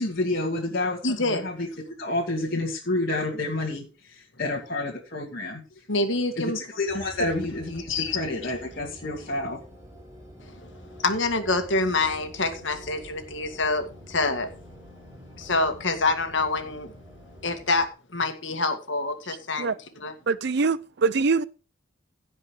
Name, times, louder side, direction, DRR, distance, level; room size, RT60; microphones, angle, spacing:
voice 1, 0.0-1.7 2.0-5.6 6.4-9.6, left 2 dB, 50° left, 2.3 m, -29 dB
voice 2, 1.0-1.4 5.9-6.6 7.9-8.2 11.0-14.5 15.4-16.9 17.4-19.7 20.0-20.1, left 3 dB, 70° left, 2.1 m, -26 dB
sound 1, 6.9-17.9, equal, 20° right, 4.3 m, -47 dB
voice 3, 20.3-21.5, right 4 dB, 60° right, 0.6 m, -23 dB
16.5 x 5.6 x 4.8 m
head